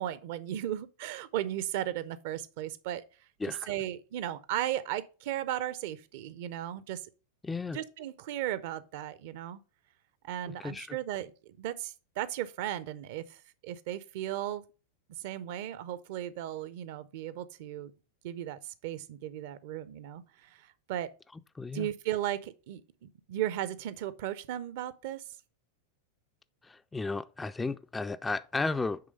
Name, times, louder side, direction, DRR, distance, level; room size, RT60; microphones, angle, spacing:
voice 1, 0.0-3.0 3.5-7.1 7.7-9.6 10.2-14.6 15.2-17.9 18.2-21.1 21.7-25.2, right 12 dB, 50° right, 0.5 m, -36 dB
voice 2, 3.4-3.7 7.4-7.8 10.5-11.0 21.6-21.9 26.6-29.0, left 3 dB, 10° left, 0.3 m, -34 dB
8.5 x 3.3 x 5.1 m
figure-of-eight pair, 90°, 0 cm